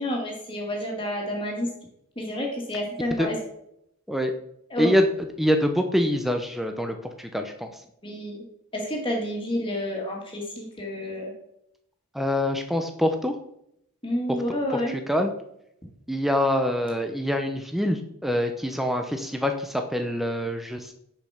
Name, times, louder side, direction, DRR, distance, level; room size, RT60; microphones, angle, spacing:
voice 1, 0.0-1.7 2.2-3.4 4.7-4.9 8.0-8.4 8.7-11.3 14.0-15.0, left 1 dB, 25° left, 0 dB, 1.9 m, -29 dB
voice 2, 5.4-7.7 12.1-13.3 15.1-15.3 16.1-20.9, left 1 dB, ahead, 5 dB, 0.6 m, -25 dB
6.9 x 5.2 x 5.7 m, 0.76 s
head